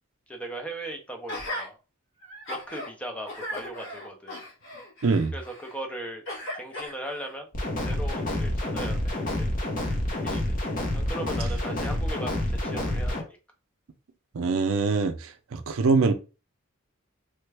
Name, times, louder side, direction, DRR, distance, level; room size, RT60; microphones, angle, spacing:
voice 1, 0.3-1.8 2.5-4.4 5.3-6.2 6.5-7.5 7.8-9.5 10.1-10.6 10.9-13.4, right 1 dB, 5° left, 0.5 m, -38 dB
Gasp, 1.3-1.7 2.2-2.9 3.3-5.8 6.3-7.3 8.0-8.1, left 1 dB, 60° left, 1.1 m, -37 dB
sound 1, 7.5-13.2, left 1 dB, 40° left, 0.7 m, -28 dB
voice 2, 14.3-16.1, right 4 dB, 70° right, 0.5 m, -24 dB
3.3 x 2.2 x 3.2 m
head